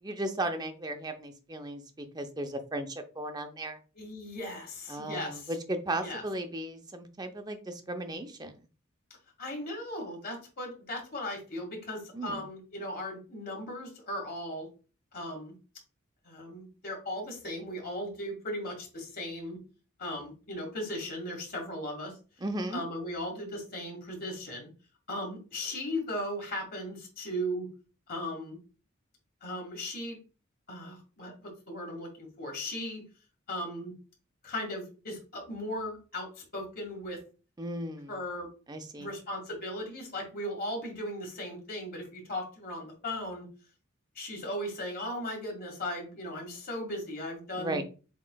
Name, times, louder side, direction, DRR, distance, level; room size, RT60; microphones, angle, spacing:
voice 1, 0.0-3.8 4.9-8.5 12.1-12.4 22.4-22.8 37.6-38.2 38.7-39.1 47.6-47.8, right 1 dB, 20° right, 6 dB, 0.6 m, -36 dB
voice 2, 4.0-5.5 6.0-6.2 9.4-14.7 15.1-15.5 16.2-19.6 20.0-22.2 22.7-24.7 25.1-27.7 28.1-28.6 29.4-30.2 30.7-33.0 33.5-33.9 34.4-37.2 38.1-38.5 39.0-43.5 44.2-47.8, left 1 dB, 45° left, 1 dB, 1.9 m, -37 dB
7.3 x 3.0 x 2.3 m, 0.35 s
head